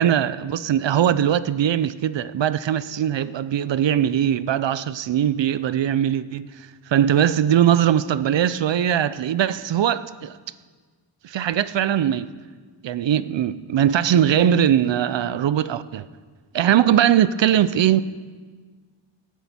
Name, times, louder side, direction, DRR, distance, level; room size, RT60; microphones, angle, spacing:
voice 1, 0.0-6.5 6.9-10.4 11.2-12.3 12.8-16.1 16.5-18.0, right 10 dB, 70° right, 0.5 m, -20 dB
18.0 x 10.5 x 4.3 m
wide cardioid pair, 125°, 46 cm